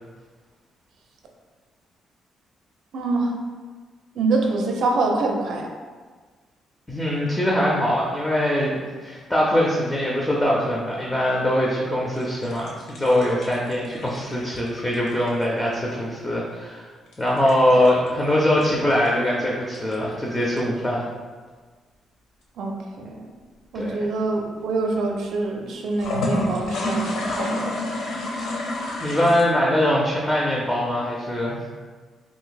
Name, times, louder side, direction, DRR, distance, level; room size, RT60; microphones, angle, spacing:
voice 1, 2.9-3.3 4.1-5.7 22.6-23.3 23.7-27.7, right 3 dB, 60° right, 1 dB, 0.4 m, -25 dB
voice 2, 6.9-16.9 17.2-21.1 23.7-24.0 29.0-31.6, left 1 dB, 5° left, -4 dB, 0.4 m, -22 dB
sound 1, 12.1-15.8 17.1-19.1 19.7-20.6 25.9-29.4, left 1 dB, 60° left, 0.6 m, -29 dB
2.6 x 2.5 x 3.9 m, 1.4 s
cardioid pair, 180°, 0 cm